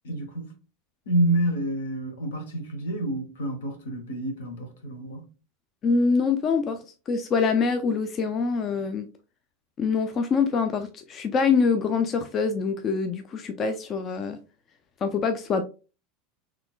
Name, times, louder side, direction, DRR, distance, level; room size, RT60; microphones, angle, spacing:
voice 1, 0.0-0.5 1.1-5.2, right 1 dB, 80° left, 1.2 m, -28 dB
voice 2, 5.8-9.1 9.8-14.4 15.0-15.6, left 5 dB, 40° left, 0.4 m, -25 dB
4.1 x 3.2 x 2.3 m
hypercardioid pair, 90°, 0 cm